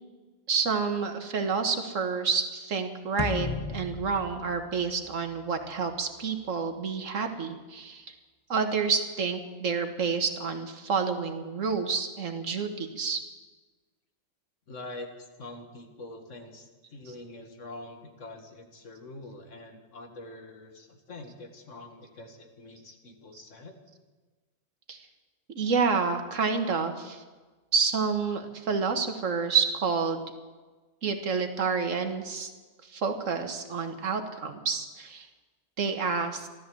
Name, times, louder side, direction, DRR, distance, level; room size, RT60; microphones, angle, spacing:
voice 1, 0.5-8.0 8.5-13.2 24.9-25.0 25.6-27.2 27.7-30.2 31.0-32.5 32.9-35.3 35.8-36.5, right 5 dB, 85° right, 6 dB, 1.8 m, -29 dB
sound 1, 3.2-5.6, left 4 dB, 30° left, 0.6 m, -35 dB
voice 2, 14.7-23.7, left 2 dB, 75° left, 4 dB, 2.1 m, -45 dB
14.5 x 13.0 x 7.7 m, 1.3 s
omnidirectional pair, 1.3 m